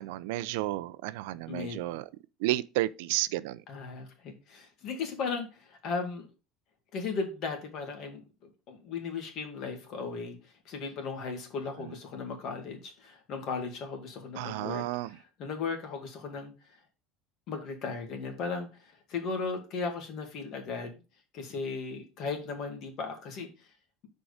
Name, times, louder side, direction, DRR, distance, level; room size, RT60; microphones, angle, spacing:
voice 1, 0.0-2.0 2.4-3.6 14.4-15.1, right 16 dB, 75° right, 0.4 m, -32 dB
voice 2, 1.5-1.8 3.7-6.3 6.9-8.2 8.7-10.4 10.7-16.5 17.5-20.9 21.3-23.5, left 4 dB, 40° left, 2.0 m, -36 dB
6.3 x 4.7 x 5.0 m
cardioid pair, 165°, 0 cm